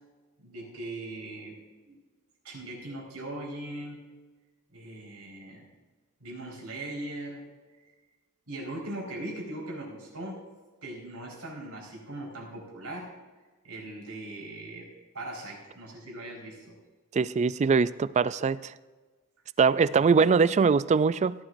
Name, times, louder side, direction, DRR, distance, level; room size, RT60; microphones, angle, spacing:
voice 1, 0.4-2.0 2.4-4.0 4.7-5.7 6.2-7.4 8.5-10.4 10.8-13.1 13.6-16.8 19.9-20.0, right 1 dB, 85° right, -2 dB, 4.4 m, -40 dB
voice 2, 17.1-18.7 19.6-21.3, right 5 dB, 30° right, 17 dB, 0.3 m, -22 dB
17.0 x 11.5 x 2.6 m, 1.3 s
head